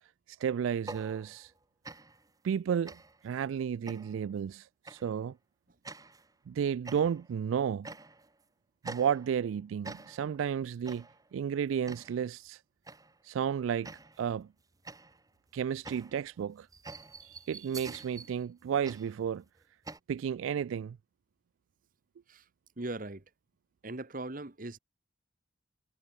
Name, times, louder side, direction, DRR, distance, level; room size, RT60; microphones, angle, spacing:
voice 1, 0.3-1.5 2.4-3.0 3.2-5.3 6.5-7.9 8.8-11.0 11.3-12.6 13.2-13.9 14.2-14.5 15.5-16.7 17.2-19.4 20.1-21.0, right 8 dB, 80° right, 0.3 m, -32 dB
sound 1, 0.7-1.6 1.8-2.3 2.9-3.3 3.9-4.3 4.9-5.2 5.9-6.3 6.9-7.4 7.8-8.4 8.8-9.5 9.8-10.4 10.9-11.3 11.9-12.3 12.9-13.2 13.8-14.3 14.9-20.0, right 3 dB, 20° right, 1.6 m, -47 dB
voice 2, 22.8-23.2 23.8-24.8, right 2 dB, 45° right, 1.3 m, -39 dB
head